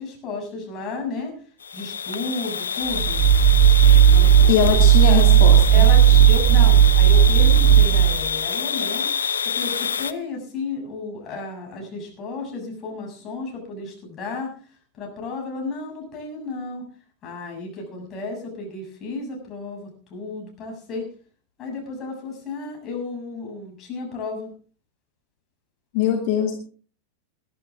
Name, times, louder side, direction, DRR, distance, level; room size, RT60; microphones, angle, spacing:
voice 1, 0.0-1.4 1.7-3.2 4.1-4.8 5.1-5.2 5.7-9.1 9.4-14.5 14.9-16.9 17.2-21.1 21.6-24.5, left 3 dB, 30° left, 1 dB, 7.2 m, -33 dB
sound 1, 1.6-10.1, left 7 dB, 70° left, 0.8 m, -27 dB
sound 2, 2.9-8.3, right 10 dB, 40° right, 2.1 m, -14 dB
voice 2, 4.5-5.8 25.9-26.6, left 9 dB, 45° left, 2 dB, 2.7 m, -22 dB
21.0 x 12.0 x 3.7 m, 0.40 s
figure-of-eight pair, 90°, 0 cm